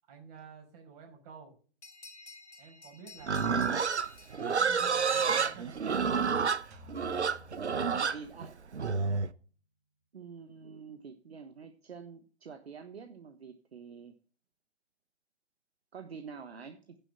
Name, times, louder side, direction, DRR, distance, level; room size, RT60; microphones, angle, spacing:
voice 1, 0.1-1.5 2.6-3.7 4.5-5.8 9.0-9.3, right 6 dB, 35° right, 2 dB, 5.6 m, -51 dB
sound 1, 1.8-6.1, left 3 dB, 80° left, 1.8 m, -54 dB
Livestock farm animals working animals, 3.2-9.3, right 5 dB, 80° right, 0.8 m, -29 dB
sound 2, 6.7-8.6, left 2 dB, 20° right, 1.8 m, -54 dB
voice 2, 8.0-8.6 10.1-14.1 15.9-17.0, right 6 dB, 65° right, 7 dB, 1.3 m, -47 dB
10.0 x 7.0 x 5.7 m, 0.40 s
figure-of-eight pair, 125°, 33 cm